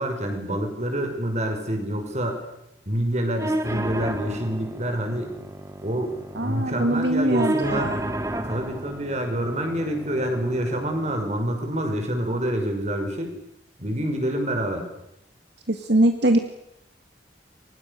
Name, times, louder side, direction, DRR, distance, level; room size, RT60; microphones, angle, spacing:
voice 1, 0.0-2.4 2.9-5.4 5.8-7.9 8.5-13.4 13.8-14.9, right 1 dB, 40° right, 4 dB, 5.9 m, -27 dB
sound 1, 3.4-11.4, right 1 dB, 15° right, 2.0 m, -32 dB
voice 2, 6.4-8.1 15.7-16.4, right 1 dB, 70° right, 6 dB, 2.0 m, -22 dB
29.5 x 24.5 x 6.8 m, 0.82 s
head